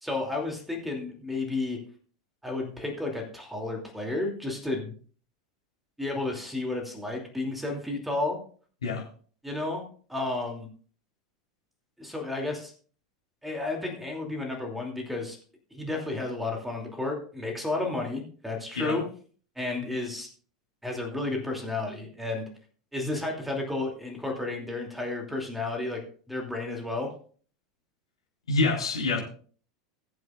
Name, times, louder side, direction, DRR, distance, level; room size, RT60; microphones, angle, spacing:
voice 1, 0.0-1.8 2.4-5.0 6.0-8.4 9.4-9.8 10.1-10.7 12.0-12.7 13.4-15.4 15.7-19.0 19.6-20.3 20.8-22.5 22.9-26.0 26.3-27.1, left 2 dB, 5° right, 2 dB, 2.8 m, -32 dB
voice 2, 28.5-29.2, left 3 dB, 75° left, -2 dB, 3.9 m, -26 dB
20.5 x 7.9 x 2.5 m, 0.43 s
figure-of-eight pair, 80°, 3 cm